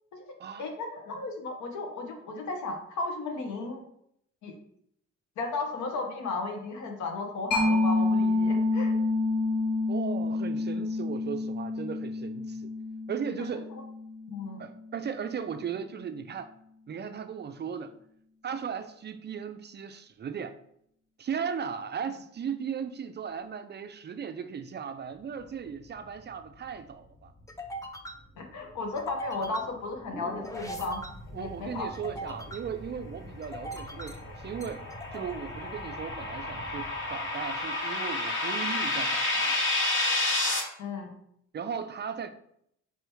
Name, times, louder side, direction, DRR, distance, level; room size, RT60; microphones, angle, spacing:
voice 1, 0.6-3.8 4.4-4.5 5.4-8.9 13.5-13.6 14.3-14.6 28.4-31.0 31.3-31.9 32.3-32.4 40.8-41.1, left 3 dB, 75° left, 3 dB, 1.1 m, -34 dB
Mallet percussion, 7.5-14.8, left 2 dB, 60° left, 1.3 m, -28 dB
voice 2, 9.9-12.7 13.1-13.7 14.6-16.5 16.9-17.9 18.4-20.6 21.2-27.3 31.3-34.8 35.1-39.6 41.5-42.3, right 7 dB, 35° right, 9 dB, 0.4 m, -37 dB
sound 1, 25.2-37.9, equal, 10° left, 0.6 m, -43 dB
sound 2, 33.8-40.6, left 2 dB, 40° left, 1.1 m, -30 dB
4.8 x 3.3 x 3.1 m, 0.71 s
cardioid pair, 90°, 30 cm